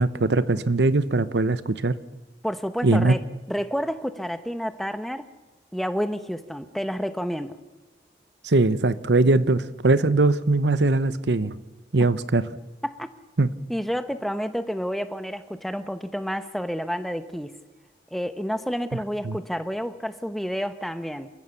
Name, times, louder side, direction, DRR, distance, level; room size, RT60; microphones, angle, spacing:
voice 1, 0.0-2.0 2.8-3.2 8.4-11.6 11.9-12.4 13.4-13.5 19.2-19.4, right 2 dB, 90° right, 15 dB, 0.9 m, -21 dB
voice 2, 2.4-3.2 3.5-5.3 5.7-7.6 12.8-13.1 13.7-17.5 18.1-21.3, equal, ahead, 10 dB, 0.9 m, -29 dB
29.0 x 14.5 x 7.0 m, 1.2 s
head